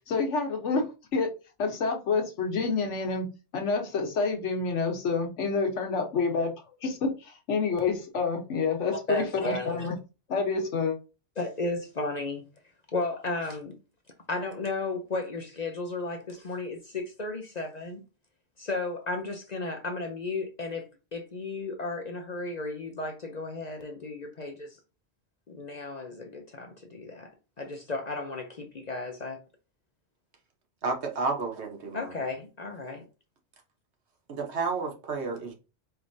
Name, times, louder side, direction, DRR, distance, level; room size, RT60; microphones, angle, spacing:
voice 1, 0.1-1.3 1.6-3.3 3.5-6.5 6.8-9.9 10.3-11.0, left 4 dB, 75° left, 1.3 m, -28 dB
voice 2, 9.1-9.9 11.4-12.5 12.9-13.8 14.3-18.0 18.6-24.8 25.5-27.3 27.6-29.4 31.9-33.0, left 2 dB, 45° left, 0.6 m, -34 dB
voice 3, 30.8-32.1 34.3-35.5, right 4 dB, 65° right, 1.3 m, -31 dB
4.6 x 3.3 x 2.6 m
omnidirectional pair, 1.2 m